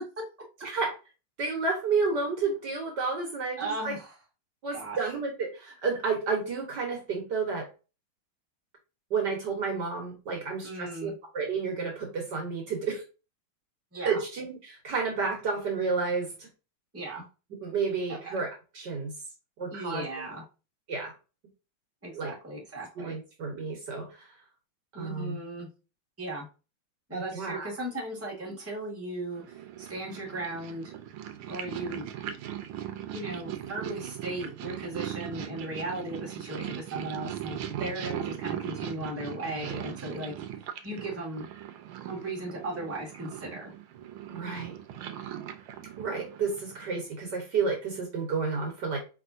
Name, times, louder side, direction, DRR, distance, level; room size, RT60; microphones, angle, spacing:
voice 1, 0.6-0.9 1.4-3.9 4.6-7.7 9.1-13.0 14.1-16.3 17.6-18.5 18.7-19.1 19.6-20.1 20.9-21.1 22.1-22.3 23.0-24.1 25.0-25.4 27.1-27.7 44.3-44.7 46.0-49.0, right 4 dB, 55° right, 1 dB, 1.7 m, -31 dB
voice 2, 3.6-4.2 4.7-5.1 10.6-11.1 13.9-14.2 16.9-17.2 18.1-18.4 19.7-20.4 22.0-23.2 24.9-25.7 26.2-26.5 27.1-30.9 31.5-32.1 33.1-40.3 40.6-41.5 42.1-43.7, right 1 dB, 5° right, -2 dB, 1.5 m, -37 dB
Purr, 29.4-47.0, right 11 dB, 80° right, 1.5 m, -39 dB
4.8 x 3.4 x 2.5 m, 0.31 s
omnidirectional pair, 2.3 m